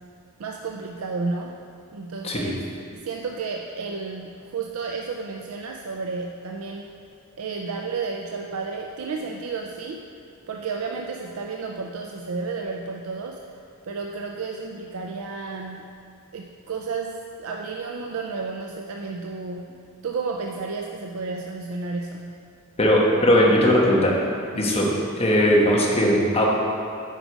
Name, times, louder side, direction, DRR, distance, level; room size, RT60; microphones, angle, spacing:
voice 1, 0.4-1.6 1.9-2.5 2.9-6.9 7.4-10.0 10.5-13.4 13.8-15.9 16.3-19.7 20.0-22.4 24.5-24.8, right 4 dB, 70° right, 2 dB, 0.5 m, -32 dB
voice 2, 2.2-2.5 22.8-24.1 24.5-24.9 25.2-26.4, equal, 25° left, -3 dB, 1.3 m, -19 dB
9.1 x 4.8 x 5.0 m, 2.5 s
head